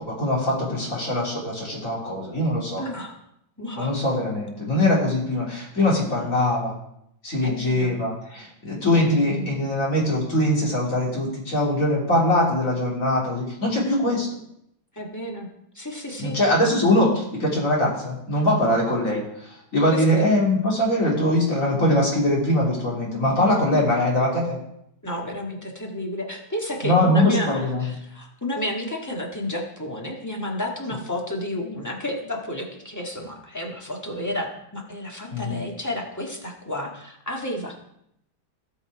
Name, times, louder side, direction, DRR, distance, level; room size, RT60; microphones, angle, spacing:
voice 1, 0.1-2.8 3.7-6.7 7.2-14.3 16.2-24.6 26.8-27.9 35.3-35.6, left 1 dB, 40° left, -4 dB, 3.2 m, -22 dB
voice 2, 2.8-3.2 3.6-3.9 7.4-7.9 9.3-9.5 14.9-15.5 15.7-16.3 18.6-18.8 19.9-20.4 25.0-37.8, left 1 dB, 10° left, -1 dB, 1.6 m, -31 dB
16.5 x 5.6 x 4.8 m, 0.76 s
omnidirectional pair, 2.2 m